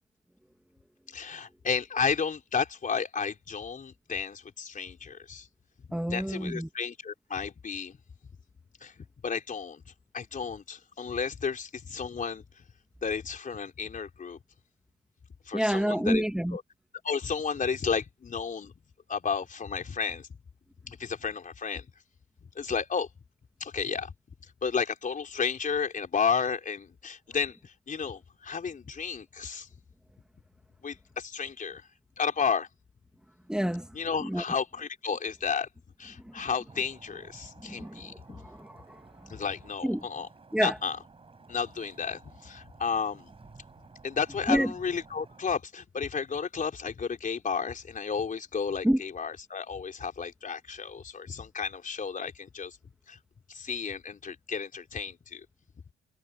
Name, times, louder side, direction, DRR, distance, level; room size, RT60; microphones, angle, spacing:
voice 1, 1.1-5.5 6.1-8.0 8.8-8.9 9.2-9.8 10.1-12.4 13.0-14.4 15.5-16.2 16.5-16.6 17.0-18.7 19.1-20.3 20.8-21.8 22.6-23.1 23.6-24.1 24.6-29.7 30.8-31.8 32.2-32.7 33.9-35.7 36.0-38.1 39.3-40.3 40.6-41.0 41.5-43.3 44.0-52.8 53.1-53.2 53.5-55.4, left 6 dB, 40° left, 4.1 m, -32 dB
voice 2, 5.9-6.7 15.5-16.6 33.5-33.9 34.2-34.4 36.2-36.4 37.7-39.0 39.8-40.1 40.5-40.8 44.5-44.7 48.8-49.0, equal, 5° right, 2.5 m, -28 dB
sound 1, 36.7-45.5, right 4 dB, 30° right, 6.0 m, -54 dB
cardioid pair, 90°, 20 cm